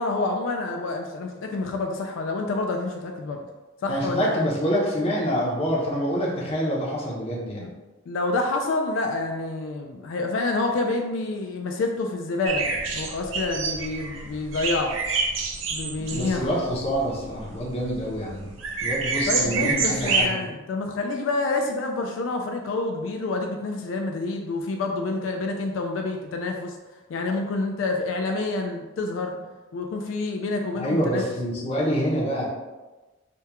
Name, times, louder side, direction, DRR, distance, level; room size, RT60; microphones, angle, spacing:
voice 1, 0.0-3.4 3.8-4.4 6.4-6.5 7.6-7.7 8.1-15.0 15.7-16.6 19.3-26.8 27.1-29.3 29.7-31.2, left 3 dB, 75° left, 3 dB, 0.3 m, -28 dB
voice 2, 3.9-7.7 16.1-18.5 18.8-20.3 30.8-32.5, equal, 30° left, -4 dB, 0.6 m, -26 dB
sound 1, 12.4-20.3, right 4 dB, 75° right, 0.5 m, -28 dB
3.4 x 2.2 x 2.8 m, 1.2 s
head